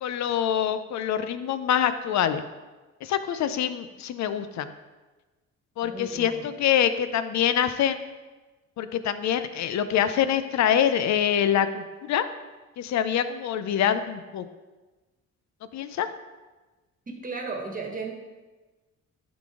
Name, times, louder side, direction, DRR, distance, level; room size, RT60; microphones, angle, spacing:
voice 1, 0.0-2.4 3.0-4.7 5.8-8.0 8.8-12.2 12.8-14.4 15.7-16.1, left 9 dB, 65° left, 11 dB, 0.6 m, -25 dB
voice 2, 5.8-6.4 17.1-18.2, right 4 dB, 30° right, 2 dB, 1.4 m, -35 dB
11.0 x 4.0 x 3.7 m, 1.2 s
cardioid pair, 90°, 30 cm